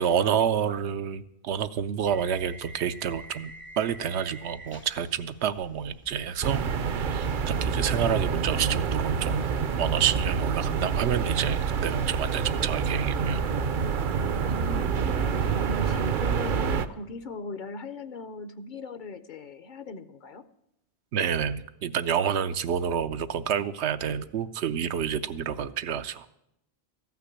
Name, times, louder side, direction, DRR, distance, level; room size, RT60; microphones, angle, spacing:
voice 1, 0.0-6.6 6.9-9.5 9.8-13.4 21.1-26.3, right 8 dB, 85° right, 11 dB, 0.9 m, -28 dB
sound 1, 2.1-10.4, equal, 20° left, 0.4 m, -46 dB
sound 2, 6.4-16.9, right 6 dB, 55° right, 0.7 m, -27 dB
voice 2, 14.5-20.4, left 3 dB, 55° left, 12 dB, 0.7 m, -39 dB
14.5 x 5.9 x 9.9 m, 0.81 s
omnidirectional pair, 1.1 m